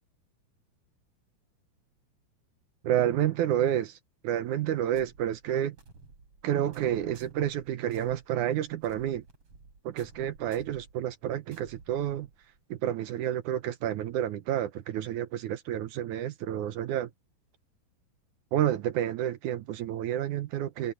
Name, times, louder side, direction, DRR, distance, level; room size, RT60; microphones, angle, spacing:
voice 1, 2.8-4.0 4.2-5.8 6.4-9.2 9.8-12.3 12.7-17.1 18.5-20.9, right 11 dB, 80° right, 1.8 m, -29 dB
sound 1, 4.9-12.6, right 4 dB, 35° right, 5.0 m, -54 dB
omnidirectional pair, 4.7 m